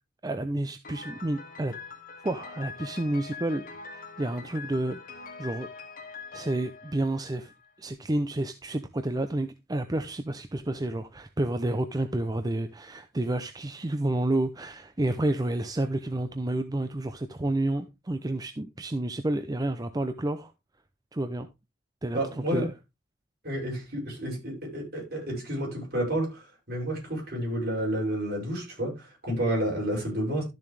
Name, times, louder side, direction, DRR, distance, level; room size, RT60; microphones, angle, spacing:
voice 1, 0.2-1.8 2.2-3.6 3.9-5.0 5.4-5.7 6.3-7.5 7.8-20.5 21.1-21.5 22.0-22.7, right 1 dB, 20° right, 0.6 m, -30 dB
Piano, 0.8-7.7, left 5 dB, 50° left, 2.1 m, -43 dB
voice 2, 22.1-22.7 23.4-30.4, right 1 dB, 55° right, 6.6 m, -30 dB
12.5 x 7.0 x 3.3 m
head